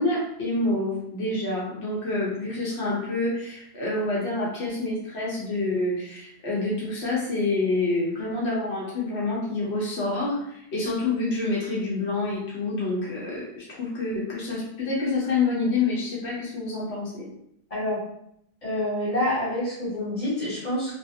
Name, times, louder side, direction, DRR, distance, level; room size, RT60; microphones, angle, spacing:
voice 1, 0.0-17.3, left 2 dB, 85° left, -5 dB, 1.1 m, -27 dB
voice 2, 18.6-20.9, left 1 dB, 35° left, -7 dB, 1.5 m, -27 dB
2.9 x 2.4 x 2.6 m, 0.74 s
omnidirectional pair, 1.1 m